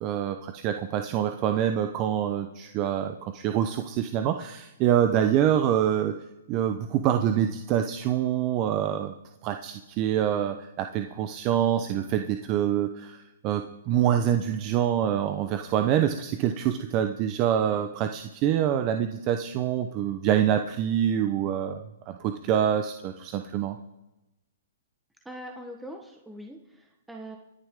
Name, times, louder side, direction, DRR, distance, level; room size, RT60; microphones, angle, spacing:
voice 1, 0.0-6.1 6.5-9.1 9.4-13.2 13.4-23.7, right 10 dB, 30° right, 7 dB, 0.8 m, -26 dB
voice 2, 25.2-27.4, right 1 dB, 5° right, 1 dB, 1.2 m, -42 dB
25.0 x 10.5 x 3.7 m, 0.96 s
hypercardioid pair, 145°, 0 cm